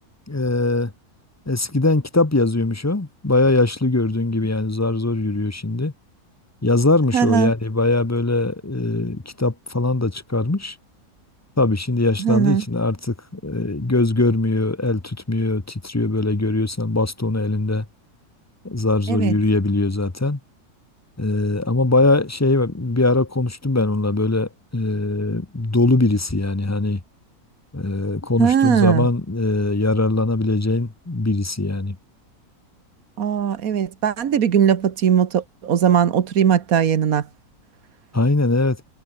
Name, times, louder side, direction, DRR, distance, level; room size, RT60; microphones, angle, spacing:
voice 1, 0.3-0.9 1.5-5.9 6.6-10.8 11.6-17.8 18.6-20.4 21.2-27.0 27.7-32.0 38.1-38.8, left 2 dB, 10° left, 0.9 m, -21 dB
voice 2, 7.1-7.5 12.2-12.6 19.1-19.4 28.4-29.1 33.2-37.2, right 8 dB, 70° right, 1.7 m, -19 dB
omnidirectional pair, 1.6 m